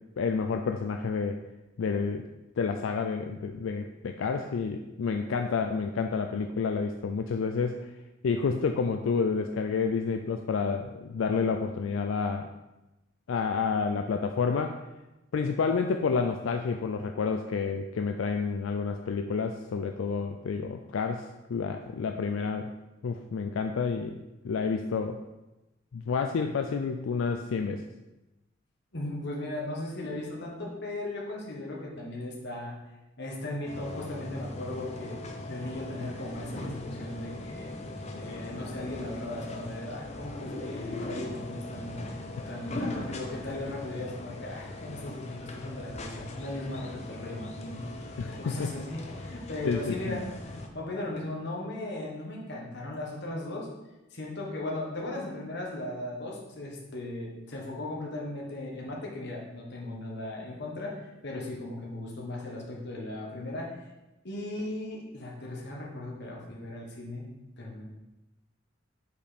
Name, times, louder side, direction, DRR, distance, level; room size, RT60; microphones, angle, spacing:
voice 1, 0.2-1.4 1.8-2.3 2.6-7.9 8.2-12.5 13.3-14.8 15.3-22.7 23.0-24.2 24.4-25.2 25.9-27.8 48.2-48.7 49.6-50.2, left 5 dB, 80° left, 5 dB, 0.4 m, -29 dB
voice 2, 28.9-32.7 33.2-35.2 35.5-37.8 38.2-42.0 42.5-53.7 54.1-63.7 64.2-67.3 67.6-67.8, left 1 dB, 60° left, -2 dB, 1.4 m, -37 dB
sound 1, 33.7-50.7, left 1 dB, 35° left, 0.7 m, -40 dB
5.3 x 5.0 x 4.3 m, 1.0 s
head